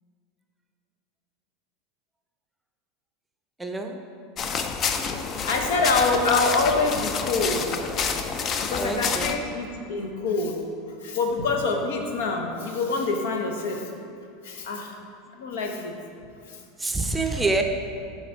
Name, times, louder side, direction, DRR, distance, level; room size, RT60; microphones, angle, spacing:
voice 1, 3.6-3.9 8.8-9.3 16.8-17.6, right 2 dB, 10° right, 4 dB, 0.5 m, -26 dB
sound 1, 4.4-9.4, left 5 dB, 40° left, 0.4 m, -28 dB
voice 2, 5.2-7.7 8.7-10.6 10.9-13.9 14.4-15.0 15.3-16.0 16.5-16.6, left 3 dB, 80° left, 3 dB, 0.8 m, -26 dB
6.3 x 3.8 x 5.1 m, 2.5 s
hypercardioid pair, 105°, 0 cm